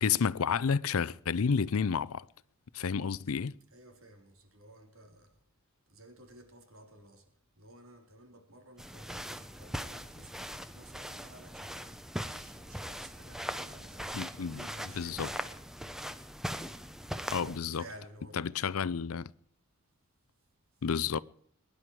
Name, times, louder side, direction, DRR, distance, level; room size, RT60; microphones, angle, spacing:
voice 1, 0.0-2.3 2.7-3.5 14.1-14.6 15.0-15.3 17.3-17.8 18.4-19.3 20.8-21.2, left 6 dB, 80° left, 0.5 m, -30 dB
voice 2, 3.7-5.4 5.9-10.4 10.7-15.5 17.4-18.6, right 1 dB, 70° right, 3.7 m, -54 dB
sound 1, 8.8-17.6, equal, ahead, 0.7 m, -40 dB
23.0 x 10.5 x 4.8 m
head